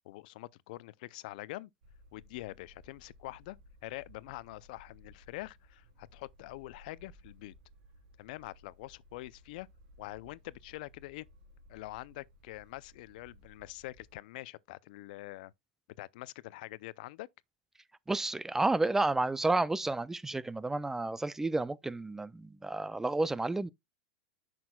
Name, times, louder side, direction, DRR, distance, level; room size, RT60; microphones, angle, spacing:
voice 1, 0.1-1.7 2.1-3.6 3.8-7.5 8.2-9.7 10.0-11.3 11.7-15.5 16.0-17.3, left 19 dB, 65° left, 0.4 m, -45 dB
sound 1, 1.8-14.2, equal, 70° right, 3.3 m, -59 dB
voice 2, 18.1-23.7, right 2 dB, 10° right, 0.4 m, -31 dB
9.4 x 6.0 x 2.2 m
hypercardioid pair, 115°, 5 cm